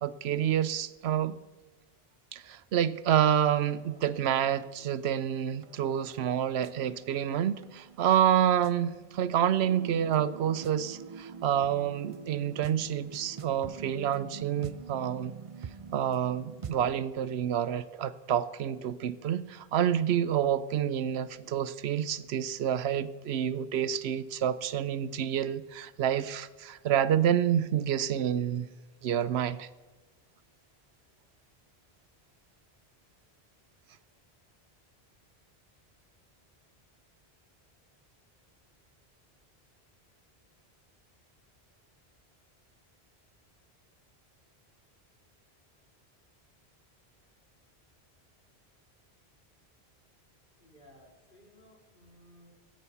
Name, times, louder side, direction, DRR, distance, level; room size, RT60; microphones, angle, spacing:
voice 1, 0.0-1.4 2.3-15.3 15.9-28.7 29.0-29.7, right 9 dB, 80° right, 15 dB, 0.9 m, -28 dB
sound 1, 3.1-17.0, right 6 dB, 45° right, 0.5 m, -46 dB
voice 2, 50.6-52.5, left 1 dB, 55° left, -1 dB, 3.6 m, -58 dB
15.0 x 9.0 x 7.0 m, 1.2 s
omnidirectional pair, 1.1 m